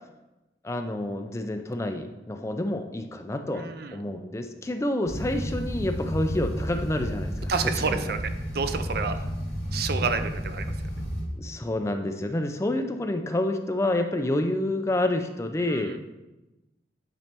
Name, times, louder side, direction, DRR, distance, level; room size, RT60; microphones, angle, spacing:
voice 1, 0.6-8.1 11.4-16.1, left 1 dB, 15° left, 6 dB, 0.4 m, -28 dB
voice 2, 3.5-4.0 7.5-8.2 8.5-9.2 9.7-10.7 15.6-16.0, right 5 dB, 55° right, 9 dB, 0.5 m, -29 dB
sound 1, 5.0-11.2, equal, 60° left, 2.3 m, -32 dB
9.0 x 3.2 x 4.3 m, 1.0 s
head